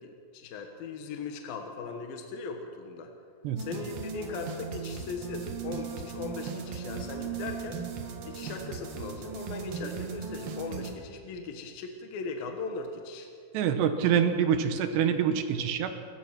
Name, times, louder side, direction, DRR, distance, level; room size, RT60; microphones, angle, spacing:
voice 1, 0.0-3.1 3.6-7.8 8.2-13.3, left 4 dB, 65° left, 4 dB, 2.8 m, -39 dB
sound 1, 3.6-10.9, right 6 dB, 60° right, 3.1 m, -38 dB
voice 2, 13.5-16.0, right 8 dB, 75° right, 8 dB, 3.1 m, -26 dB
29.0 x 15.0 x 5.9 m, 2.2 s
omnidirectional pair, 5.1 m